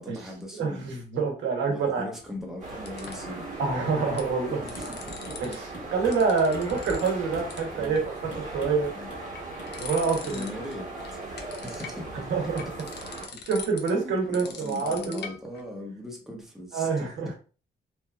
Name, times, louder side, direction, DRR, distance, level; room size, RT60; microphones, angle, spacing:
voice 1, 0.0-0.8 1.6-3.5 4.6-5.3 6.1-6.2 7.7-8.1 8.9-9.1 10.2-10.8 11.1-11.2 11.6-12.3 13.9-16.9 17.2-17.3, left 1 dB, ahead, 0.8 m, -39 dB
voice 2, 0.6-2.0 3.6-4.6 5.4-8.9 9.8-10.4 12.3-12.6 13.4-15.2 16.7-17.3, right 4 dB, 85° right, 0.8 m, -26 dB
sound 1, 2.1-3.4 3.9-4.3 4.5-5.5 5.8-7.2 7.5-7.6 7.9-8.6 9.1-10.7 11.0-15.6, left 5 dB, 60° left, 0.6 m, -42 dB
sound 2, 2.6-13.3, right 2 dB, 40° right, 1.1 m, -38 dB
sound 3, 4.8-5.0 5.3-5.5 5.7-6.7 7.0-7.6 7.8-8.0 8.3-8.8 9.1-9.3 9.6-9.8, equal, 25° left, 1.4 m, -44 dB
2.9 x 2.3 x 2.3 m
cardioid pair, 90°, 19 cm